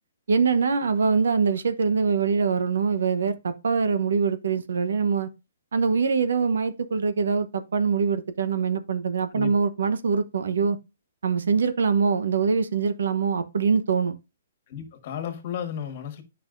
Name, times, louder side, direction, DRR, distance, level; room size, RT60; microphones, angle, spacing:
voice 1, 0.3-5.3 5.7-10.8 11.2-14.1, right 5 dB, 80° right, 0.9 m, -23 dB
voice 2, 14.7-16.2, left 9 dB, 40° left, 1.7 m, -33 dB
9.0 x 5.5 x 2.5 m
hypercardioid pair, 165°, 0 cm